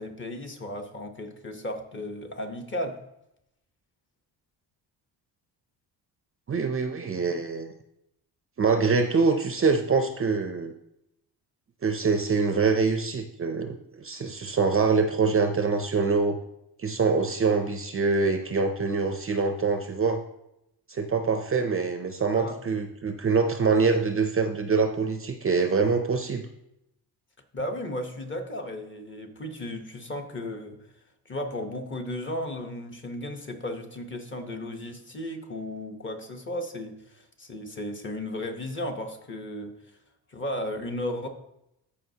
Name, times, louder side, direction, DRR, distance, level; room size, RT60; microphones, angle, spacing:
voice 1, 0.0-3.0 22.3-22.6 27.5-30.8 31.2-39.7 40.3-41.3, left 1 dB, 25° left, 4 dB, 1.0 m, -35 dB
voice 2, 6.5-7.7 8.6-10.7 11.8-16.4 16.8-20.2 20.9-26.5, right 4 dB, 30° right, 7 dB, 0.5 m, -25 dB
14.0 x 4.9 x 2.8 m, 0.82 s
cardioid pair, 125°, 43 cm